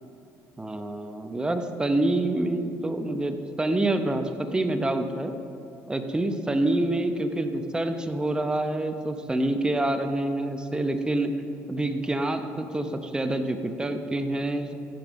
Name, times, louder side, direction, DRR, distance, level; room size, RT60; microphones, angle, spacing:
voice 1, 0.6-5.3 5.9-11.3 11.7-14.7, right 1 dB, 15° right, 7 dB, 0.8 m, -27 dB
15.5 x 5.4 x 5.1 m, 2.8 s
cardioid pair, 95°, 6 cm